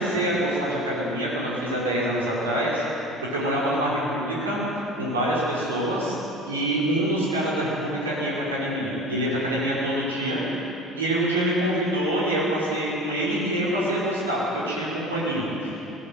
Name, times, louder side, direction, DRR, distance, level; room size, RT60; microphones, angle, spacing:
voice 1, 0.0-4.6 5.0-6.1 6.4-10.4 11.0-15.8, right 1 dB, 80° right, -7 dB, 5.7 m, -25 dB
20.5 x 19.0 x 7.9 m, 2.9 s
figure-of-eight pair, 50°, 0 cm